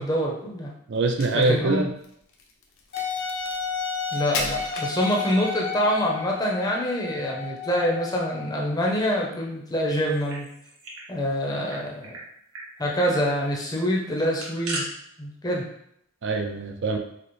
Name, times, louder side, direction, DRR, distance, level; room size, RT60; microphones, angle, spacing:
voice 1, 0.0-0.7 1.3-1.8 4.1-10.5 11.1-12.2 12.8-14.9 15.2-15.7, equal, 20° left, -2 dB, 0.6 m, -26 dB
voice 2, 0.9-1.9 16.2-17.0, right 3 dB, 55° right, 4 dB, 0.4 m, -24 dB
Crack, 1.0-5.6, left 3 dB, 75° left, 0.7 m, -36 dB
Wind instrument woodwind instrument, 2.9-8.6, left 6 dB, 50° left, 0.8 m, -32 dB
sound 1, 10.0-11.1 11.3-11.4 11.7-12.2 12.5-12.7 13.0-13.2 14.1-14.8, right 2 dB, 85° right, 1.1 m, -36 dB
5.0 x 2.1 x 3.1 m, 0.73 s
head